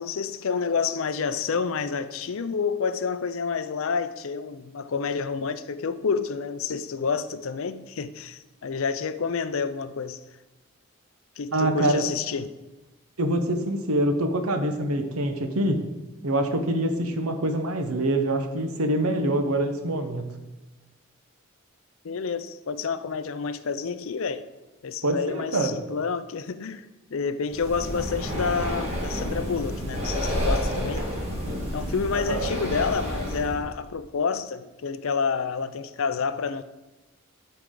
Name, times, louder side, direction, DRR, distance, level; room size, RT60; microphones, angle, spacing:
voice 1, 0.0-10.2 11.4-12.5 22.0-24.5 24.8-31.0 31.7-36.6, left 5 dB, 65° left, 0.5 m, -29 dB
voice 2, 11.5-12.1 13.2-15.8 16.2-20.3 25.0-25.8 32.1-32.5, right 1 dB, 80° right, 1.0 m, -25 dB
Breathing, 27.5-33.6, equal, 30° right, 1.8 m, -29 dB
13.5 x 4.7 x 3.8 m
head